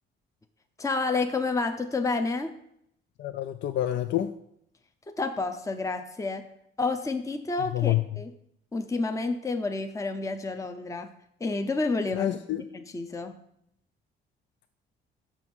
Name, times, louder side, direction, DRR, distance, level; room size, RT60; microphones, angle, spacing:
voice 1, 0.8-2.5 5.2-6.5 6.8-8.3 8.7-11.1 11.4-12.3 12.7-13.4, left 3 dB, 15° left, 6 dB, 0.7 m, -29 dB
voice 2, 3.2-4.3 7.6-8.0 12.1-12.6, left 13 dB, 65° left, 10 dB, 0.4 m, -27 dB
6.0 x 5.6 x 6.2 m, 0.74 s
cardioid pair, 90°, 20 cm